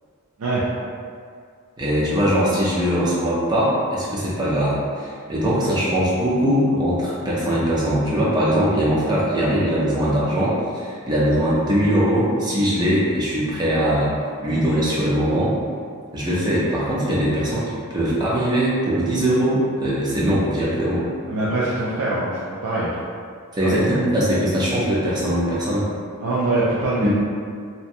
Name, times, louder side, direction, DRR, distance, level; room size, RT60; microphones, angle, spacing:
voice 1, 1.8-14.1 14.4-15.5 16.1-21.0 23.6-25.9 27.0-27.1, equal, 20° right, -7 dB, 0.5 m, -21 dB
voice 2, 21.3-22.3 22.6-22.9 23.6-23.7 26.2-27.1, right 2 dB, 85° right, -8 dB, 0.4 m, -22 dB
2.7 x 2.1 x 2.5 m, 2.2 s
head